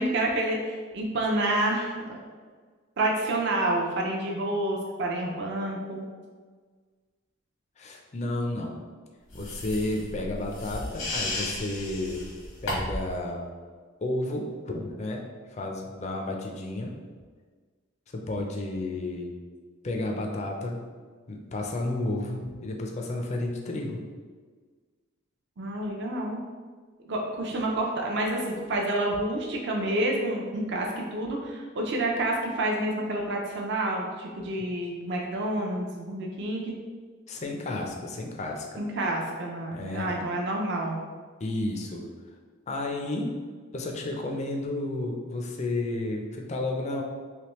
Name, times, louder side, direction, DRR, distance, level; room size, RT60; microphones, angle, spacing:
voice 1, 0.0-2.2 3.0-6.0 25.6-26.4 27.0-36.7 38.8-41.0, right 1 dB, 55° right, -1 dB, 0.5 m, -29 dB
voice 2, 7.8-8.8 9.3-12.2 12.6-13.5 14.0-15.2 15.5-16.9 18.1-19.3 19.8-20.8 21.3-24.0 37.3-38.7 39.7-40.2 41.4-42.1 42.7-43.3 43.7-47.0, left 2 dB, 35° left, 1 dB, 0.4 m, -32 dB
sound 1, 9.3-13.1, left 1 dB, 85° left, 1.1 m, -34 dB
3.3 x 3.0 x 3.0 m, 1.5 s
head